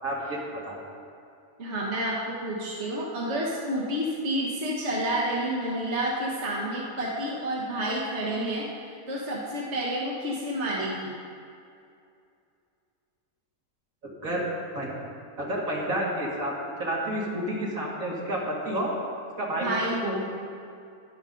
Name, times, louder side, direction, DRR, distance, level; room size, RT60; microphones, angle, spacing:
voice 1, 0.0-0.8 14.0-14.5 14.7-15.0 15.4-16.5 16.8-18.9 19.4-19.7 20.0-20.2, right 1 dB, 65° right, -4 dB, 2.6 m, -30 dB
voice 2, 1.6-11.1 19.6-20.2, right 1 dB, 50° right, -5 dB, 1.6 m, -29 dB
21.5 x 7.2 x 3.9 m, 2.5 s
omnidirectional pair, 1.5 m